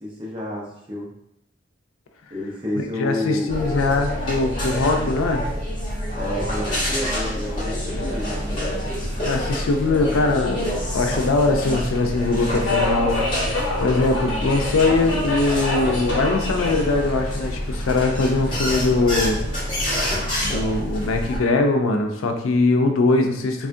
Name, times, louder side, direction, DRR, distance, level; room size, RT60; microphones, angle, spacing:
voice 1, 0.0-1.1 2.3-3.6 6.2-8.7, left 1 dB, 25° right, -4 dB, 0.7 m, -30 dB
voice 2, 2.7-5.4 9.2-19.4 20.4-23.7, left 3 dB, 85° left, 4 dB, 0.4 m, -21 dB
sound 1, 3.5-21.4, equal, 25° left, 0.9 m, -27 dB
Subway metro underground, 7.9-19.9, left 2 dB, 65° left, 0.8 m, -31 dB
3.5 x 2.3 x 2.5 m, 0.77 s
head